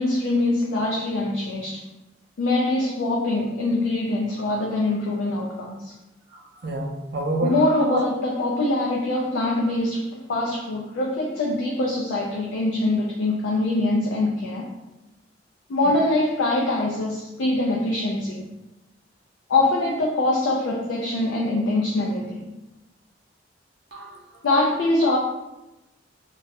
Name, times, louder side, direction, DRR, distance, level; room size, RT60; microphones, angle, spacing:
voice 1, 0.0-1.8 2.4-5.9 7.4-14.7 15.7-18.5 19.5-22.4 24.4-25.2, left 2 dB, 75° left, -2 dB, 0.3 m, -23 dB
voice 2, 6.3-8.0 23.9-24.4, right 2 dB, 60° right, 1 dB, 0.4 m, -29 dB
2.2 x 2.0 x 2.7 m, 1.0 s
head